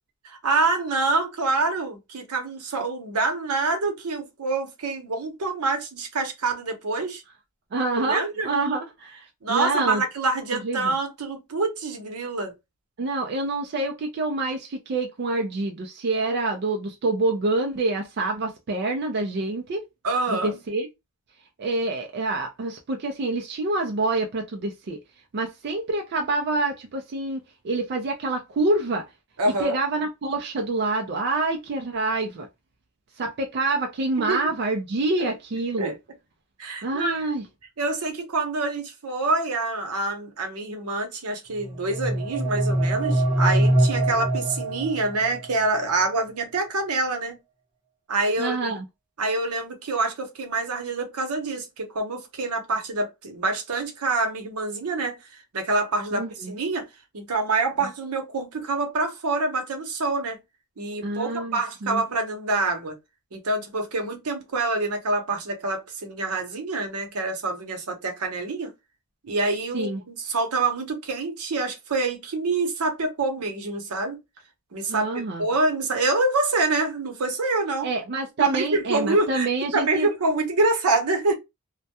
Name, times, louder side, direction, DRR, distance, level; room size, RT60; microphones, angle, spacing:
voice 1, 0.2-7.2 8.0-8.5 9.4-12.5 20.0-20.6 29.4-29.8 34.2-34.4 35.8-35.9 36.6-37.2 37.8-47.4 48.1-48.7 49.2-55.2 55.5-56.8 57.1-60.4 60.8-63.0 63.3-68.7 69.2-74.2 74.7-77.9 78.4-79.5 79.7-81.4, right 3 dB, 75° right, 0.8 m, -26 dB
voice 2, 7.7-10.0 10.5-10.9 13.0-19.8 20.3-20.9 21.6-25.0 25.3-29.1 29.5-32.5 33.2-35.9 36.8-37.4 48.4-48.8 56.1-56.5 61.0-62.0 69.7-70.0 74.9-75.4 77.8-80.1, right 2 dB, 50° right, 0.4 m, -27 dB
sound 1, 41.6-45.5, right 1 dB, 5° right, 0.8 m, -23 dB
2.2 x 2.1 x 2.8 m
head